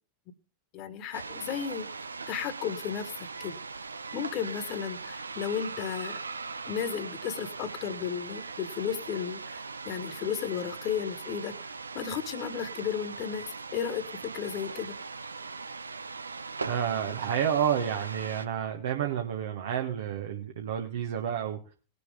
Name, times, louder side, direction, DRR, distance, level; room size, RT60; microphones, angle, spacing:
voice 1, 0.7-3.6 4.1-6.2 6.7-13.5 13.7-15.0, left 8 dB, 40° left, 11 dB, 1.6 m, -34 dB
sound 1, 1.1-18.5, right 4 dB, 75° right, 0.5 m, -40 dB
voice 2, 16.6-21.7, right 9 dB, 60° right, 4 dB, 1.3 m, -30 dB
20.0 x 6.8 x 3.7 m, 0.35 s
figure-of-eight pair, 90°, 0 cm